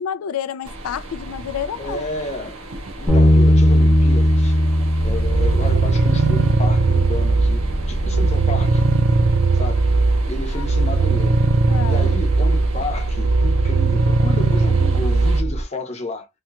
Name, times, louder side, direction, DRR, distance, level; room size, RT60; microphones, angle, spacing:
voice 1, 0.0-2.0 10.5-10.7 11.7-12.1, left 8 dB, 80° left, 0.3 m, -29 dB
sound 1, 0.6-15.4, right 1 dB, 75° right, 1.0 m, -35 dB
voice 2, 1.8-2.7 3.0-4.6 5.0-8.8 9.5-9.9 10.2-11.5 11.9-16.3, left 2 dB, 30° left, 0.8 m, -31 dB
Bass guitar, 3.1-9.3, equal, ahead, 0.9 m, -19 dB
sound 2, 5.0-15.6, right 3 dB, 60° right, 0.5 m, -18 dB
3.4 x 2.8 x 2.3 m
head